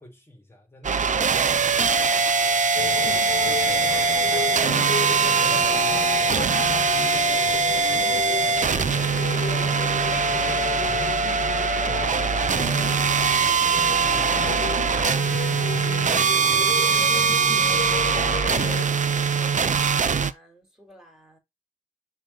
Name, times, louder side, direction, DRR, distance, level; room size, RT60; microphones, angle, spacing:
voice 1, 0.0-3.1 6.2-6.4 7.8-9.0, left 1 dB, 15° left, 2.5 m, -48 dB
sound 1, 0.8-20.3, right 5 dB, 65° right, 0.5 m, -22 dB
sound 2, 2.8-18.9, left 6 dB, 85° left, 0.7 m, -32 dB
voice 2, 3.0-5.8 17.7-21.4, equal, 5° right, 3.5 m, -48 dB
6.6 x 4.1 x 4.0 m
wide cardioid pair, 90°, 14 cm